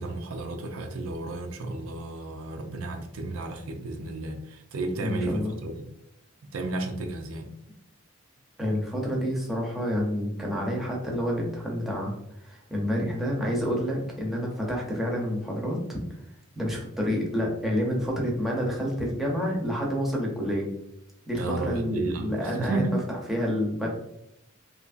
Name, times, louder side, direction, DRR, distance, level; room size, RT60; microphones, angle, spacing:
voice 1, 0.0-5.9 6.5-7.5 21.4-23.0, right 2 dB, 85° right, 4 dB, 0.4 m, -32 dB
voice 2, 5.0-5.6 8.6-12.1 12.4-16.0 16.6-20.7 21.3-23.9, equal, ahead, -2 dB, 0.6 m, -28 dB
2.8 x 2.5 x 2.4 m, 0.79 s
head